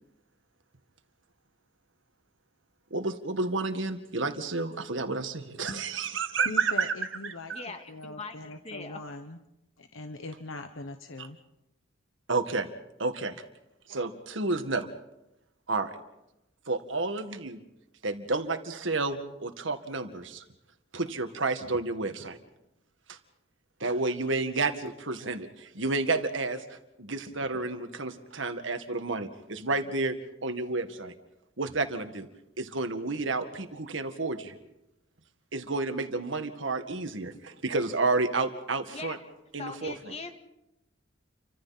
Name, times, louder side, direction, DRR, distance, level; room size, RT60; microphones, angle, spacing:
voice 1, 2.9-6.9 7.2-7.6 11.2-11.3 12.3-12.7 13.0-13.4 13.9-14.9 15.7-15.9 16.7-17.6 18.0-20.4 20.9-22.4 23.1-23.2 23.8-30.2 30.4-31.1 31.6-32.3 32.6-34.5 35.5-39.2 39.5-39.9, right 3 dB, 70° right, 7 dB, 1.9 m, -30 dB
voice 2, 6.4-7.5 7.9-9.4 9.8-11.4, left 2 dB, 90° left, 7 dB, 1.2 m, -41 dB
voice 3, 7.5-8.4 8.6-9.0 38.9-39.3 39.6-40.3, left 3 dB, 30° left, 6 dB, 2.0 m, -41 dB
30.0 x 25.5 x 4.3 m, 0.90 s
head